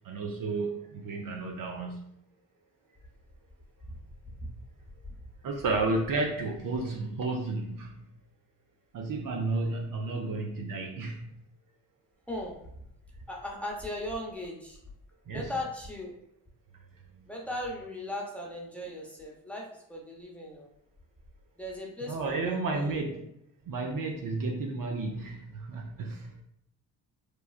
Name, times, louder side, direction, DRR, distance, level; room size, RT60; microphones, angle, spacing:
voice 1, 0.0-2.1 5.4-8.1 8.9-11.3 15.3-15.5 22.0-23.2 23.7-26.3, right 3 dB, 50° right, 1 dB, 0.6 m, -32 dB
voice 2, 13.3-14.8 15.3-16.1 17.3-20.7 21.6-23.0, left 1 dB, 5° left, -2 dB, 0.9 m, -38 dB
3.2 x 2.3 x 2.4 m, 0.74 s
supercardioid pair, 55°, 43 cm